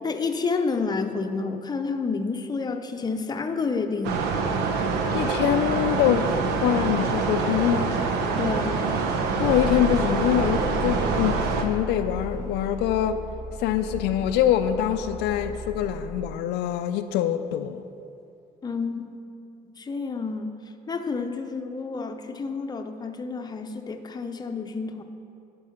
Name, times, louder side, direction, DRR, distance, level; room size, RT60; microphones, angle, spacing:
voice 1, 0.0-4.3 8.4-8.8 18.6-19.2 19.8-20.5 20.9-25.0, left 4 dB, 25° left, 0.6 m, -29 dB
sound 1, 4.0-11.6, right 4 dB, 85° right, 0.8 m, -25 dB
voice 2, 5.1-8.1 9.4-13.2 13.6-17.8, left 11 dB, 90° left, 0.4 m, -24 dB
sound 2, 9.5-16.4, left 1 dB, 15° right, 1.5 m, -35 dB
11.0 x 5.4 x 5.8 m
cardioid pair, 110°, 17 cm